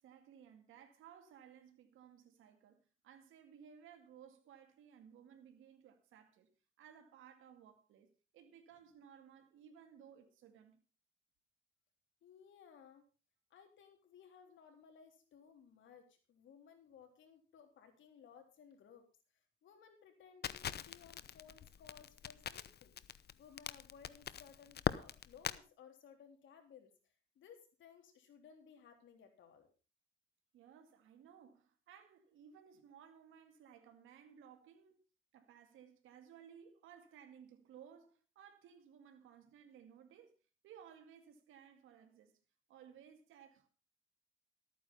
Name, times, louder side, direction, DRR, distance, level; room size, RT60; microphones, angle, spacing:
voice 1, 0.0-6.5 6.8-10.8 30.5-35.0 35.3-40.4 40.6-42.3 42.7-43.7, right 8 dB, 85° right, 2.2 m, -59 dB
voice 2, 12.2-13.1 13.5-19.1 19.6-22.9 23.4-26.9 27.4-29.7, left 7 dB, 75° left, 3.5 m, -60 dB
Crackle, 20.4-25.6, left 9 dB, 55° left, 0.8 m, -41 dB
13.5 x 9.2 x 5.4 m
cardioid pair, 90°, 20 cm